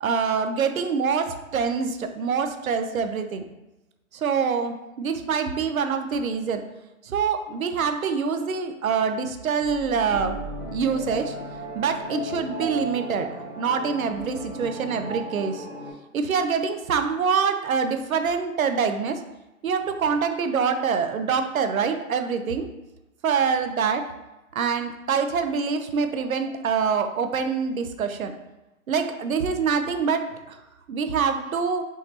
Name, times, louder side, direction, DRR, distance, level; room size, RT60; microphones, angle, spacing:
voice 1, 0.0-3.4 4.1-6.6 7.0-10.4 10.7-11.4 11.7-13.3 13.6-15.7 16.1-19.2 19.6-22.7 23.2-24.0 24.5-28.3 28.9-30.6 30.9-31.8, right 6 dB, 75° right, 7 dB, 0.7 m, -25 dB
sound 1, 8.3-8.6 9.6-15.9, right 1 dB, 10° right, 0.5 m, -35 dB
5.6 x 3.2 x 2.8 m, 0.99 s
hypercardioid pair, 145°, 42 cm